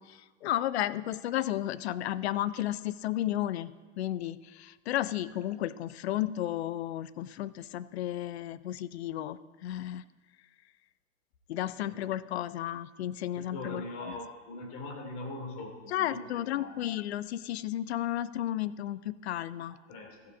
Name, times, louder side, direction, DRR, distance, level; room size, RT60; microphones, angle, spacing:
voice 1, 0.0-10.0 11.5-14.2 15.9-19.8, left 13 dB, 55° left, 16 dB, 0.6 m, -33 dB
voice 2, 13.4-16.8 19.9-20.2, left 2 dB, 40° left, 1 dB, 3.0 m, -41 dB
14.0 x 6.7 x 4.9 m, 1.3 s
hypercardioid pair, 105°, 38 cm